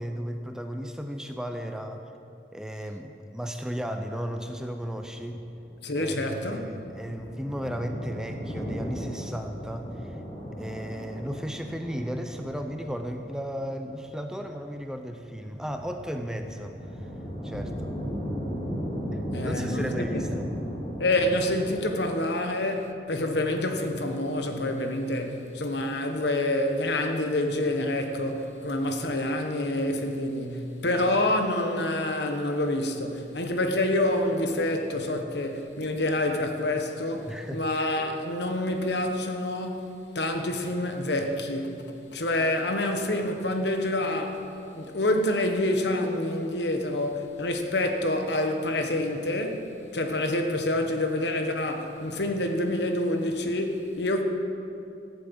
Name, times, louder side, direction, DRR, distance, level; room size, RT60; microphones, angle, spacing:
voice 1, 0.0-2.0 2.5-5.4 5.9-10.2 10.6-17.1 17.4-17.9 19.1-20.5 37.3-37.6, equal, 5° right, 0.6 m, -35 dB
sound 1, 5.0-21.9, equal, 30° left, 2.6 m, -36 dB
voice 2, 5.8-6.7 19.3-20.4 21.0-41.8 42.1-44.4 44.7-54.2, left 1 dB, 65° left, 1.3 m, -27 dB
14.5 x 7.6 x 8.8 m
head